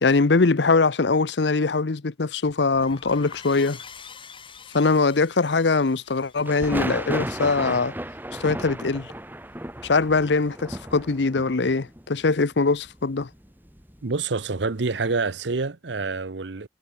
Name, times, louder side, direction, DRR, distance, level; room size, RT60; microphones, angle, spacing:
voice 1, 0.0-3.8 4.7-7.9 8.4-9.1 9.8-13.3, left 3 dB, 70° left, 0.8 m, -22 dB
sound 1, 2.7-3.4 6.4-14.2 14.5-14.7, right 1 dB, 10° right, 3.7 m, -34 dB
sound 2, 2.8-8.1, left 6 dB, 30° left, 6.8 m, -47 dB
voice 2, 14.0-16.7, right 4 dB, 75° right, 0.9 m, -27 dB
head